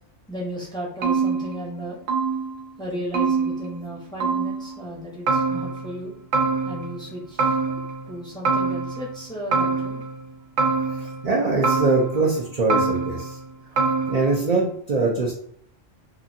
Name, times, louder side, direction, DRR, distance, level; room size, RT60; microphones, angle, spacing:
voice 1, 0.3-2.0 2.8-6.1 6.7-10.0, equal, 5° left, -4 dB, 0.6 m, -35 dB
sound 1, 1.0-2.7 3.1-4.0 4.2-4.8 5.3-6.0 6.3-7.1 7.4-8.2 8.5-9.2 9.5-10.3 10.6-11.3 11.6-12.4 12.7-13.4 13.8-14.5, right 4 dB, 85° right, 1.0 m, -25 dB
voice 2, 11.0-13.4 14.1-15.3, right 3 dB, 55° right, -3 dB, 0.4 m, -23 dB
2.8 x 2.5 x 2.6 m, 0.65 s
omnidirectional pair, 1.3 m